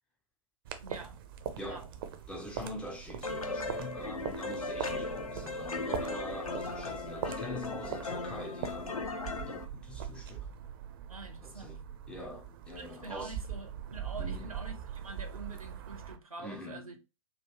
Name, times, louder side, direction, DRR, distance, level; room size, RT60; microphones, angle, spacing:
sound 1, 0.6-16.2, right 8 dB, 40° right, 0.5 m, -42 dB
voice 1, 0.8-1.2 1.6-1.9 11.1-11.8 12.7-17.0, right 3 dB, 80° right, 1.1 m, -46 dB
voice 2, 2.3-10.5 11.4-11.8 12.1-13.4 14.2-14.5 16.4-17.0, left 1 dB, 5° left, 0.4 m, -44 dB
sound 2, 3.2-9.7, left 3 dB, 80° left, 0.7 m, -37 dB
3.5 x 2.3 x 2.9 m
figure-of-eight pair, 115°, 18 cm